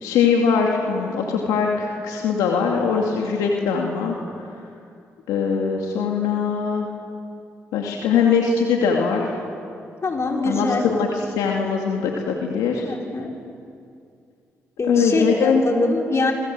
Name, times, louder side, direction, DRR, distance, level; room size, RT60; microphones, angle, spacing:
voice 1, 0.0-4.1 5.3-6.9 7.7-9.3 10.4-11.1 11.4-12.9 14.9-15.6, left 6 dB, 90° left, 0 dB, 2.5 m, -21 dB
voice 2, 10.0-10.9 12.8-13.3 14.8-16.3, left 2 dB, 45° left, 0 dB, 6.0 m, -23 dB
28.5 x 25.0 x 7.7 m, 2.4 s
supercardioid pair, 55°, 6 cm